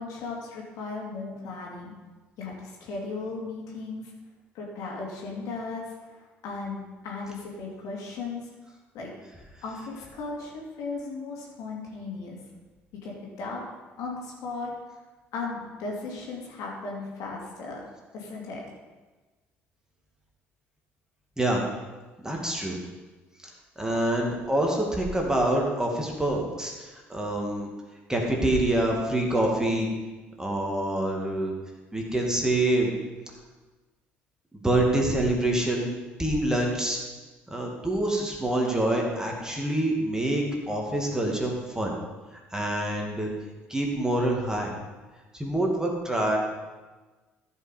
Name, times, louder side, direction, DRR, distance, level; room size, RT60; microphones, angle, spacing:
voice 1, 0.0-1.9 2.4-4.1 4.5-8.5 8.9-9.1 9.6-12.4 12.9-13.6 14.0-14.7 15.3-17.8 18.1-18.6, left 3 dB, 60° left, -2 dB, 2.5 m, -36 dB
voice 2, 22.2-22.8 23.8-27.7 28.1-29.9 30.4-31.5 31.9-32.9 34.6-35.9 36.2-37.0 37.5-41.9 42.5-43.3 43.7-44.7 45.3-46.4, right 1 dB, 10° right, 0 dB, 2.4 m, -26 dB
14.5 x 5.5 x 5.2 m, 1.2 s
figure-of-eight pair, 55°, 6 cm